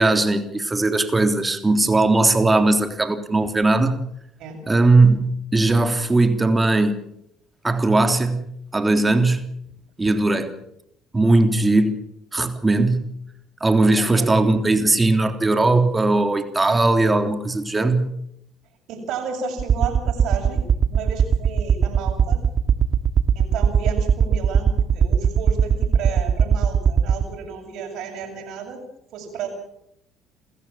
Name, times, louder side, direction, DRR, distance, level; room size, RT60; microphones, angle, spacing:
voice 1, 0.0-4.0 4.7-7.1 7.6-9.5 10.0-10.6 11.1-12.0 12.3-13.1 13.6-18.1, right 2 dB, 20° right, 3.5 m, -19 dB
voice 2, 14.0-14.3 18.9-20.6 20.9-22.4 23.3-28.8 29.1-29.5, right 6 dB, 65° right, 7.5 m, -32 dB
sound 1, 19.6-27.2, right 7 dB, 50° right, 1.8 m, -18 dB
29.5 x 14.0 x 7.5 m
hypercardioid pair, 60°, 0 cm